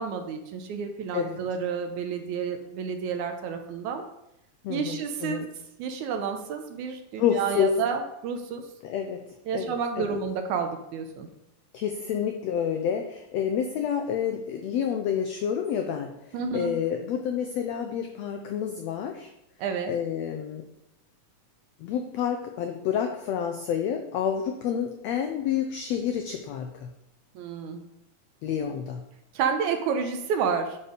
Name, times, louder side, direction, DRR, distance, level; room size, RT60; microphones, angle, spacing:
voice 1, 0.0-4.0 4.7-5.4 5.8-8.7 9.5-11.3 16.3-16.8 19.6-19.9 27.4-27.8 29.3-30.8, right 6 dB, 75° right, 6 dB, 2.0 m, -30 dB
voice 2, 4.6-5.5 7.2-7.7 8.8-9.2 9.5-10.2 11.7-19.3 19.9-20.6 21.8-26.9 28.4-29.0, left 8 dB, 90° left, 5 dB, 1.5 m, -29 dB
11.5 x 4.3 x 5.1 m, 0.84 s
omnidirectional pair, 3.8 m